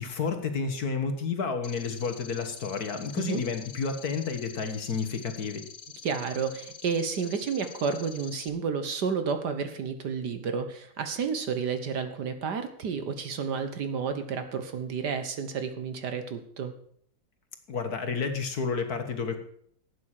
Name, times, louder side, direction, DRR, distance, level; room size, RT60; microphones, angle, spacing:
voice 1, 0.0-5.6 17.7-19.4, left 5 dB, 50° left, 7 dB, 1.6 m, -31 dB
sound 1, 1.6-8.5, left 7 dB, 70° left, 0.5 m, -46 dB
voice 2, 6.0-16.7, right 6 dB, 60° right, 8 dB, 1.6 m, -31 dB
11.5 x 8.8 x 6.5 m, 0.63 s
omnidirectional pair, 2.2 m